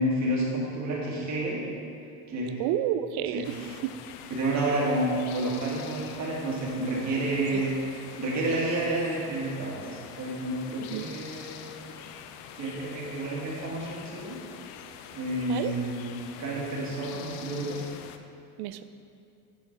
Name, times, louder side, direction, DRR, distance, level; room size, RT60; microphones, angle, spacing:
voice 1, 0.0-1.6 2.3-2.5 3.3-3.5 4.3-7.8 8.2-11.6 12.5-14.4 15.1-17.8, right 1 dB, 35° right, -4 dB, 1.8 m, -30 dB
voice 2, 2.6-3.5 7.5-7.6 10.9-11.1 15.5-15.7 18.6-18.8, right 11 dB, 60° right, 12 dB, 0.5 m, -30 dB
sound 1, 3.4-18.2, left 8 dB, 80° left, 0.6 m, -45 dB
7.6 x 5.1 x 4.4 m, 2.6 s
supercardioid pair, 100°, 46 cm